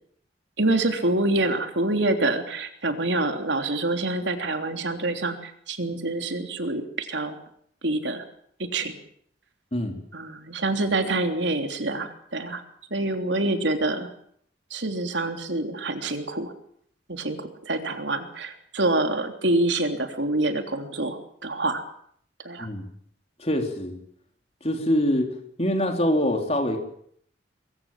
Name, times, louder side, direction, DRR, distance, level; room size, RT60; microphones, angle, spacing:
voice 1, 0.6-7.4 7.8-8.2 8.6-9.0 10.1-12.6 12.9-14.1 14.7-16.5 17.1-21.8 22.5-22.7, right 2 dB, 80° right, 5 dB, 3.3 m, -26 dB
voice 2, 23.4-24.0 24.6-25.3 25.6-26.8, equal, 35° left, 4 dB, 3.9 m, -24 dB
23.5 x 23.0 x 7.5 m, 0.66 s
head